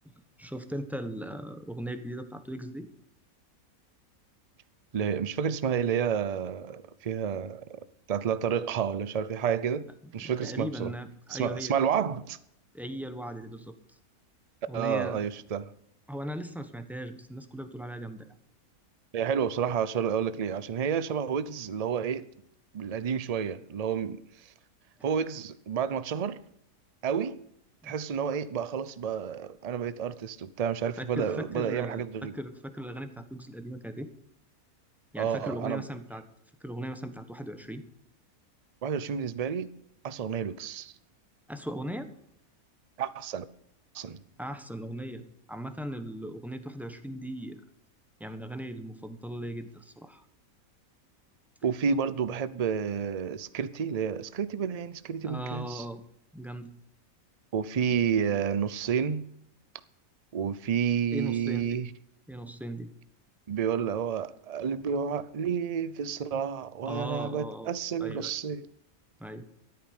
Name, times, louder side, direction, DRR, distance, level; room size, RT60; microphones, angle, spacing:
voice 1, 0.0-2.9 10.0-11.7 12.7-13.7 14.7-15.2 16.1-18.3 27.8-28.0 31.0-34.1 35.1-36.2 36.6-37.8 41.5-42.1 44.4-45.2 45.5-47.6 48.2-50.2 55.2-56.0 56.3-56.7 61.1-61.7 62.3-62.9 66.9-67.7 68.0-68.3 69.2-69.5, right 1 dB, ahead, 1.1 m, -38 dB
voice 2, 4.9-10.9 11.3-12.4 14.7-15.7 19.1-22.3 22.7-24.2 25.0-26.4 27.0-27.4 27.8-32.3 35.2-35.9 38.8-39.7 40.0-40.9 43.0-43.4 43.9-44.2 51.6-55.8 57.5-59.2 60.3-61.9 63.5-68.7, right 7 dB, 40° right, 0.5 m, -30 dB
13.5 x 9.2 x 6.6 m
omnidirectional pair, 1.5 m